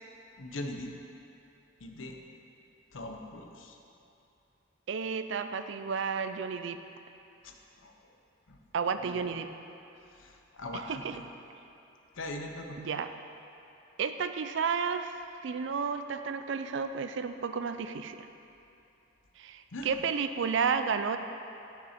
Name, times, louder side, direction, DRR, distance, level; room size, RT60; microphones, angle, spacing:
voice 1, 0.4-0.9 1.8-2.2 2.9-3.8 7.4-7.5 7.8-8.1 8.5-8.6 9.0-9.3 10.1-11.2 12.1-12.8 19.7-20.0, left 1 dB, 75° left, 3 dB, 0.8 m, -41 dB
voice 2, 4.9-6.8 8.7-9.5 10.9-11.2 12.8-13.1 14.0-15.2 15.4-18.2 19.4-21.2, right 6 dB, 60° right, 9 dB, 0.4 m, -32 dB
6.8 x 6.1 x 5.7 m, 2.8 s
head